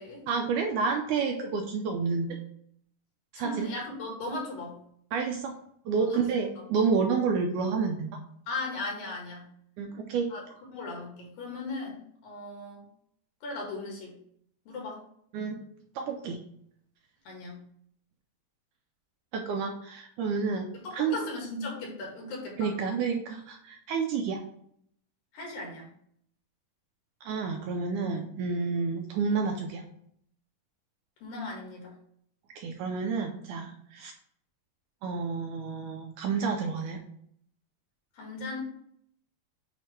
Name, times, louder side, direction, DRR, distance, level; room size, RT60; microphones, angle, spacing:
voice 1, 0.3-2.4 3.3-3.7 5.1-5.6 5.9-8.1 9.8-10.3 15.3-15.6 16.0-16.4 19.3-20.7 20.9-21.2 22.6-24.4 27.2-29.8 32.6-34.1 35.0-37.0, right 5 dB, 75° right, 2 dB, 1.9 m, -29 dB
voice 2, 3.4-4.8 6.0-6.2 8.5-9.5 10.3-10.4 10.7-12.8 13.4-14.2 14.7-15.0 17.3-17.6 20.8-22.7 25.3-25.9 31.2-31.9 38.2-38.6, left 2 dB, 75° left, -1 dB, 3.6 m, -37 dB
8.3 x 3.2 x 4.3 m, 0.66 s
omnidirectional pair, 4.1 m